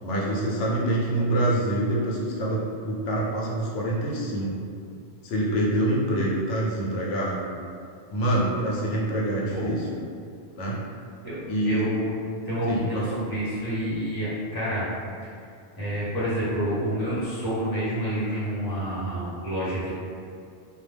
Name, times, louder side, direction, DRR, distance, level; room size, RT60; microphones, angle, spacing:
voice 1, 0.0-4.7 5.2-7.5 8.1-9.9 10.6-10.8 11.5-11.9 12.7-13.2, right 1 dB, 90° left, -4 dB, 0.9 m, -26 dB
voice 2, 11.6-12.1 12.4-14.9 15.8-19.9, equal, 20° left, -10 dB, 0.8 m, -28 dB
2.2 x 2.1 x 3.2 m, 2.3 s
omnidirectional pair, 1.2 m